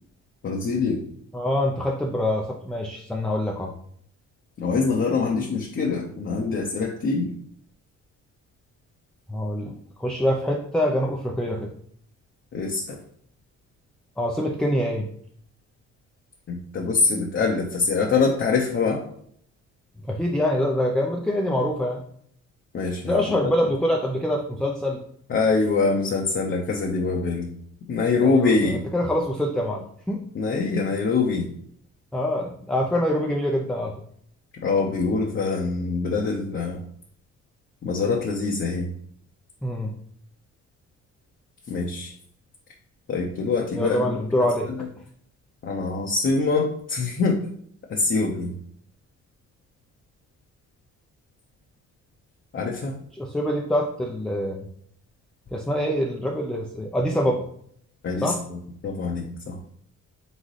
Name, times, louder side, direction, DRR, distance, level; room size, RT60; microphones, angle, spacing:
voice 1, 0.4-1.0 4.6-7.3 12.5-13.0 16.5-19.1 22.7-23.7 25.3-27.5 27.9-28.8 30.3-31.5 34.6-36.8 37.8-38.9 41.7-42.1 43.1-44.1 44.7-44.9 45.6-47.4 47.9-48.5 52.5-53.0 58.0-59.6, left 4 dB, 40° left, -1 dB, 0.7 m, -24 dB
voice 2, 1.3-3.7 9.3-11.7 14.2-15.1 20.1-22.0 23.1-25.0 28.2-30.2 32.1-33.9 39.6-39.9 43.8-44.9 53.2-54.6 55.5-57.4 58.2-58.4, left 1 dB, 5° left, 0 dB, 0.5 m, -25 dB
4.0 x 3.6 x 3.2 m, 0.66 s
cardioid pair, 90°, 30 cm